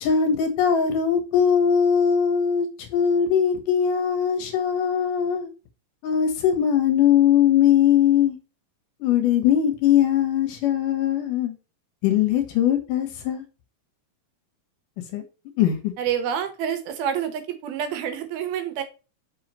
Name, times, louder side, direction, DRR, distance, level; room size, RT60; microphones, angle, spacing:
voice 1, 0.0-2.7 2.9-5.5 6.0-8.4 9.0-11.5 12.0-13.4 15.1-15.2 15.6-15.8, left 8 dB, 70° left, 5 dB, 2.5 m, -20 dB
voice 2, 16.0-18.8, right 8 dB, 90° right, 8 dB, 3.0 m, -28 dB
6.4 x 5.6 x 3.0 m, 0.31 s
omnidirectional pair, 4.2 m